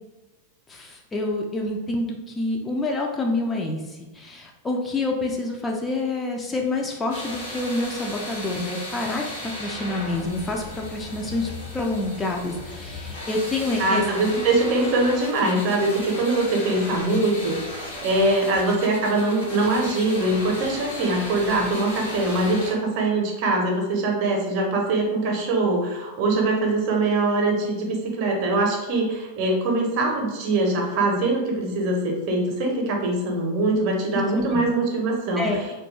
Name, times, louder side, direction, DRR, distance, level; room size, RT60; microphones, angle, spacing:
voice 1, 0.7-14.0 34.3-34.6 35.4-35.7, left 2 dB, 15° left, 1 dB, 0.3 m, -27 dB
sound 1, 7.1-22.7, left 1 dB, 65° left, 0.7 m, -36 dB
voice 2, 13.8-17.6 18.0-35.7, right 2 dB, 45° right, 0 dB, 0.6 m, -23 dB
2.2 x 2.2 x 3.0 m, 1.1 s
figure-of-eight pair, 90°, 0 cm